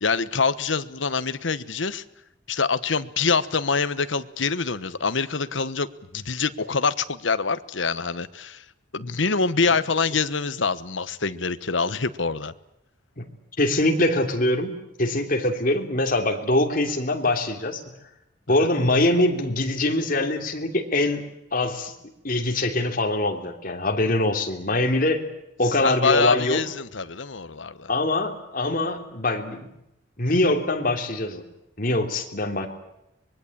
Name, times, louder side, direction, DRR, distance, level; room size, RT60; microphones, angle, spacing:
voice 1, 0.0-2.0 2.5-5.9 6.1-8.6 8.9-12.5 25.8-27.9, left 4 dB, 75° left, 14 dB, 1.2 m, -25 dB
voice 2, 13.6-14.7 15.0-17.8 18.5-21.2 21.5-21.9 22.2-25.2 25.6-26.6 27.9-29.7 30.2-31.4 31.8-32.7, left 2 dB, 45° left, 4 dB, 3.2 m, -23 dB
25.0 x 22.0 x 8.7 m, 0.84 s
head